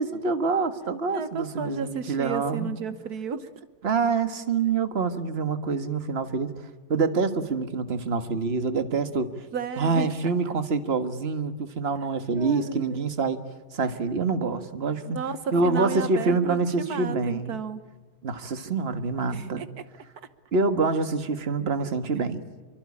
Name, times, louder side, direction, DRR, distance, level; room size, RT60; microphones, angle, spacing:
voice 1, 0.0-2.7 3.8-6.5 6.9-9.5 9.8-13.4 13.7-15.2 15.5-17.6 18.2-19.6 20.5-22.4, right 4 dB, 40° right, 10 dB, 1.8 m, -26 dB
voice 2, 1.1-3.7 9.5-10.1 12.4-13.0 15.1-17.8 19.3-19.7, right 5 dB, 75° right, 12 dB, 1.6 m, -33 dB
28.0 x 24.0 x 8.6 m, 1.3 s
omnidirectional pair, 1.6 m